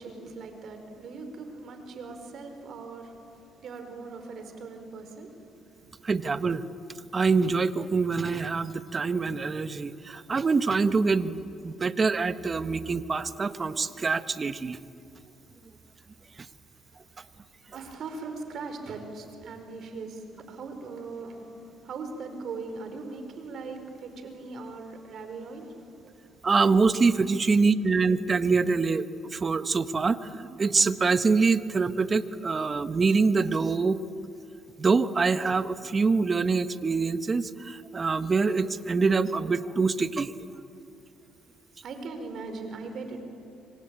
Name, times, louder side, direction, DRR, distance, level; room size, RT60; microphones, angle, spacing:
voice 1, 0.0-3.1 3.6-5.3 5.8-6.1 17.7-25.9 41.8-43.2, right 4 dB, 60° right, 6 dB, 4.9 m, -40 dB
voice 2, 6.0-6.6 7.1-11.4 11.6-14.8 26.4-29.0 29.3-34.0 34.8-40.3, right 4 dB, 35° right, 12 dB, 1.3 m, -25 dB
26.0 x 25.5 x 9.0 m, 2.6 s
supercardioid pair, 65°, 0 cm